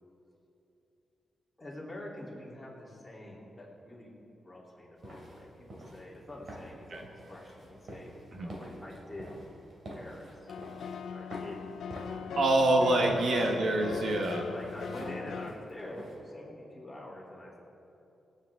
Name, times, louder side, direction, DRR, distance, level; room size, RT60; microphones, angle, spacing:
voice 1, 1.6-4.2 4.4-9.3 9.9-10.5 11.1-11.6 12.1-13.1 14.5-17.6, left 1 dB, 10° left, -6 dB, 3.2 m, -46 dB
sound 1, 5.0-16.2, equal, 45° right, 2.9 m, -47 dB
sound 2, 10.5-15.5, left 7 dB, 85° left, 0.4 m, -39 dB
voice 2, 12.1-14.4, right 2 dB, 65° right, 1 dB, 1.3 m, -26 dB
26.5 x 8.8 x 3.7 m, 2.9 s
wide cardioid pair, 160°, 0 cm